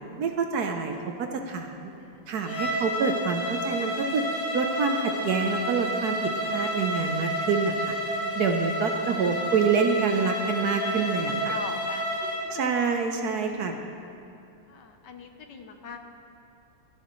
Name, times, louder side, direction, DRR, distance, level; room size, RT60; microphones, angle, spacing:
voice 1, 0.2-1.9 2.3-4.2 4.5-6.2 6.5-7.9 8.3-11.5 12.5-13.8, right 5 dB, 65° right, 4 dB, 1.2 m, -27 dB
voice 2, 2.0-2.4 11.5-12.7 13.4-13.7 14.7-16.0, left 5 dB, 65° left, 5 dB, 1.5 m, -42 dB
Bowed string instrument, 2.4-12.5, equal, 15° left, 3.3 m, -30 dB
27.5 x 10.0 x 3.1 m, 2.7 s
omnidirectional pair, 2.1 m